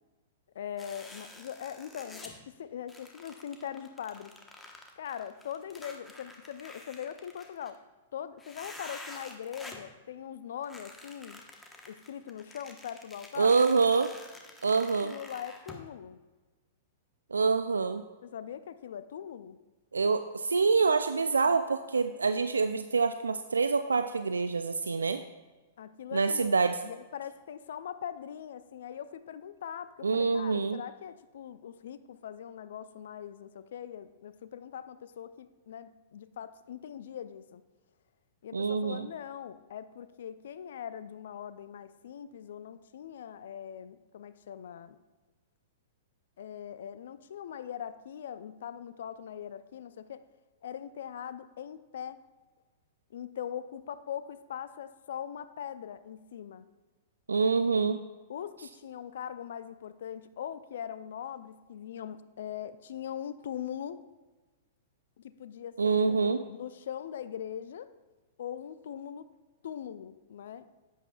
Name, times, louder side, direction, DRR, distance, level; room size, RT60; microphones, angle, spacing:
voice 1, 0.5-4.3 5.0-7.8 8.1-11.4 11.9-13.6 15.0-16.2 18.2-19.6 25.8-26.6 26.8-37.6 38.4-45.0 46.4-50.2 50.6-52.2 53.1-56.7 58.3-64.0 65.2-67.9 68.4-69.2 69.6-70.7, left 9 dB, 65° left, 13 dB, 0.4 m, -41 dB
sound 1, 0.8-2.4 2.9-7.8 8.4-9.9 10.6-15.8, left 2 dB, 10° left, 1.1 m, -49 dB
voice 2, 13.4-14.1 14.6-15.2 17.3-18.0 19.9-25.2 26.1-26.8 30.0-30.8 38.5-39.1 57.3-58.0 65.8-66.4, right 4 dB, 80° right, 10 dB, 0.3 m, -26 dB
11.0 x 8.2 x 2.3 m, 1.2 s
figure-of-eight pair, 105°, 0 cm